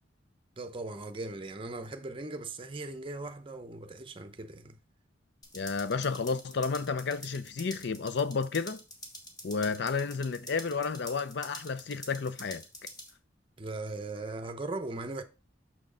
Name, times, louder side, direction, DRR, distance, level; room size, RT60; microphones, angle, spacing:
voice 1, 0.6-4.8 13.6-15.2, right 2 dB, 30° right, 0.7 m, -39 dB
sound 1, 5.4-13.1, left 1 dB, 20° left, 1.4 m, -47 dB
voice 2, 5.5-8.8 9.4-12.6, left 5 dB, 60° left, 0.5 m, -31 dB
6.2 x 6.1 x 3.8 m
head